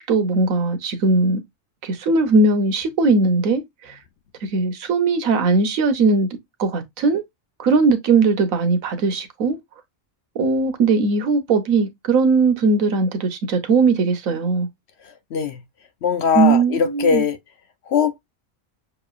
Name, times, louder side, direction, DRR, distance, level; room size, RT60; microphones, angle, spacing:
voice 1, 0.0-1.4 1.8-4.0 4.4-6.3 6.6-7.2 7.6-9.6 10.3-14.7 16.3-17.2, right 3 dB, 80° right, 1.3 m, -19 dB
voice 2, 16.0-17.4 17.9-18.2, left 6 dB, 60° left, 0.8 m, -20 dB
6.3 x 3.0 x 2.3 m
omnidirectional pair, 1.4 m